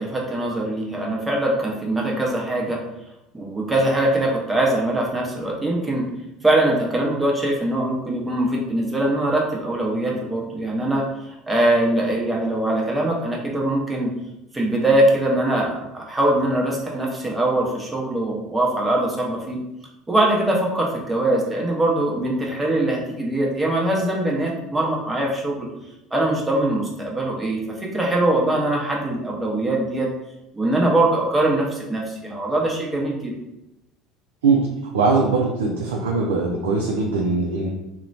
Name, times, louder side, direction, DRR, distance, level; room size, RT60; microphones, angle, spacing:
voice 1, 0.0-2.8 3.3-6.0 6.4-11.1 11.5-14.1 14.5-19.6 20.1-25.7 26.1-27.6 27.9-30.1 30.5-33.3, right 1 dB, 15° right, -2 dB, 0.8 m, -22 dB
voice 2, 34.9-37.7, right 4 dB, 90° right, 0 dB, 0.3 m, -21 dB
2.9 x 2.1 x 2.6 m, 0.92 s
hypercardioid pair, 85°, 0 cm